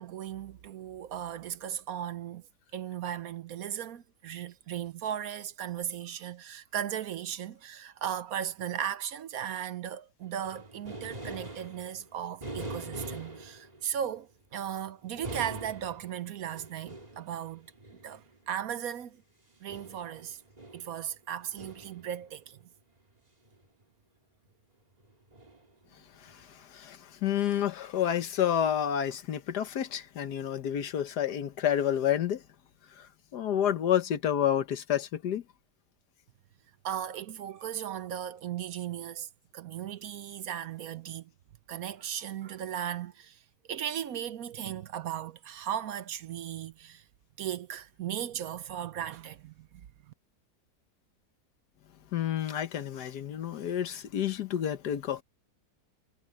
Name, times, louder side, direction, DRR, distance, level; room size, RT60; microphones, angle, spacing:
voice 1, 0.0-2.4 2.7-17.7 18.0-19.2 19.6-20.4 20.7-22.6 36.8-41.3 41.7-43.4 43.7-47.0 47.4-49.9, right 10 dB, 65° right, 1.1 m, -37 dB
sound 1, 10.2-14.2 15.1-18.7 19.7-22.5 23.5-23.7 25.0-25.9 26.3-26.4, right 2 dB, 25° right, 2.9 m, -44 dB
voice 2, 26.7-32.4 33.0-33.1 33.3-35.4 52.1-55.2, left 10 dB, 75° left, 1.6 m, -29 dB
omnidirectional pair, 1.8 m